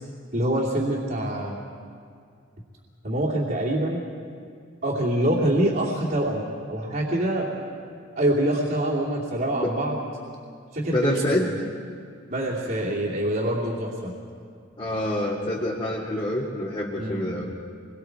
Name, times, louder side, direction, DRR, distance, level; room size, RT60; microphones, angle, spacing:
voice 1, 0.3-1.6 3.0-4.0 4.8-7.5 8.2-10.1 10.7-11.6 12.3-14.1 16.9-17.5, right 1 dB, 45° right, -6 dB, 2.7 m, -25 dB
voice 2, 10.9-11.5 14.8-17.5, left 1 dB, 25° left, -6 dB, 2.2 m, -26 dB
28.0 x 22.5 x 4.7 m, 2.2 s
head